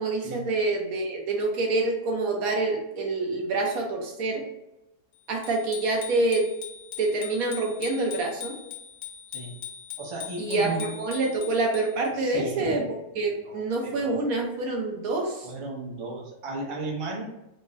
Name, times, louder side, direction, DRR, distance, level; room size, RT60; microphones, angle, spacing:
voice 1, 0.0-4.4 5.3-6.4 7.0-8.5 10.4-12.8 13.1-15.5, right 2 dB, 75° right, 1 dB, 1.2 m, -26 dB
Bicycle bell, 5.4-12.1, left 9 dB, 70° left, 1.1 m, -41 dB
voice 2, 10.0-10.9 12.1-14.2 15.4-17.2, right 2 dB, 35° right, -2 dB, 0.4 m, -35 dB
3.5 x 2.0 x 3.8 m, 0.92 s
omnidirectional pair, 1.5 m